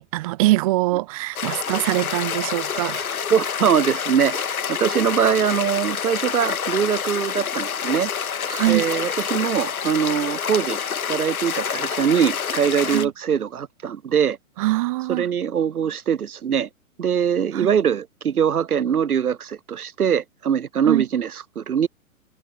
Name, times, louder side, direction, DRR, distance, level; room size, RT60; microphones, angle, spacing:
voice 1, 0.0-3.1 8.5-8.9 12.9-13.1 14.6-15.3 17.5-17.7 20.8-21.0, right 18 dB, 25° right, 0.5 m, -23 dB
sound 1, 1.4-13.1, left 7 dB, 75° left, 2.1 m, -27 dB
voice 2, 3.3-8.1 8.7-14.4 15.1-16.7 17.0-21.9, right 8 dB, 85° right, 0.8 m, -22 dB
figure-of-eight pair, 120°, 43 cm